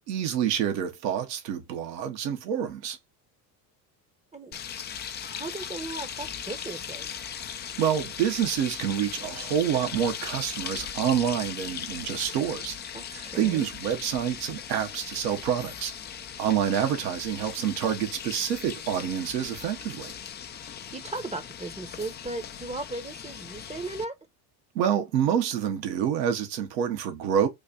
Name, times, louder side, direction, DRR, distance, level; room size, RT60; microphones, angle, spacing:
voice 1, 0.0-3.0 7.8-12.8 13.1-15.9 16.4-20.2 24.7-27.5, right 9 dB, 80° right, 1.2 m, -27 dB
sound 1, 4.5-24.0, left 8 dB, 25° left, 0.3 m, -38 dB
voice 2, 5.2-7.1 12.9-13.7 20.6-24.1, right 2 dB, 15° right, 0.7 m, -37 dB
3.1 x 2.5 x 4.1 m
hypercardioid pair, 80°, 49 cm